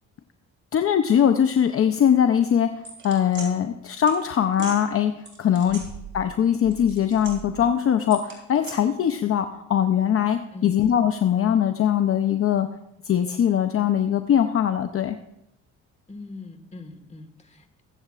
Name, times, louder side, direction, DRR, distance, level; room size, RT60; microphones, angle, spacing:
voice 1, 0.7-2.7 3.0-5.1 5.4-5.8 6.1-12.7 13.0-15.2, left 9 dB, 45° left, 8 dB, 0.6 m, -21 dB
sound 1, 2.8-3.5 4.1-4.2 4.5-4.8 5.3-6.4 6.6-7.6 8.1-8.7, right 5 dB, 40° right, 4.3 m, -39 dB
voice 2, 10.5-10.8 16.1-17.8, left 3 dB, 20° left, 6 dB, 1.6 m, -42 dB
22.5 x 7.8 x 2.4 m, 0.83 s
cardioid pair, 90°, 30 cm